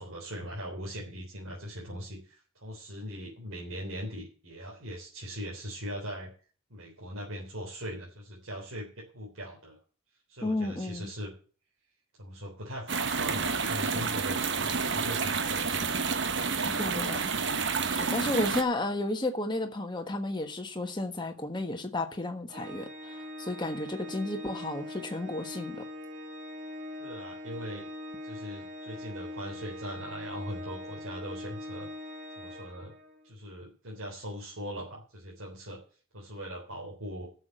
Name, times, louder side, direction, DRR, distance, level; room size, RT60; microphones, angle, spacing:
voice 1, 0.0-6.3 6.7-9.8 10.3-11.3 12.2-16.1 16.7-16.9 27.0-27.8 28.2-31.9 32.4-32.9 33.2-35.8 36.1-37.3, equal, 70° right, 3.6 m, -40 dB
voice 2, 10.4-11.1 16.7-17.3 17.9-25.9, left 2 dB, 20° left, 1.3 m, -33 dB
sound 1, 12.9-18.6, right 5 dB, 55° right, 1.0 m, -29 dB
Organ, 22.5-33.3, left 1 dB, 40° right, 1.6 m, -42 dB
12.0 x 6.8 x 7.7 m
head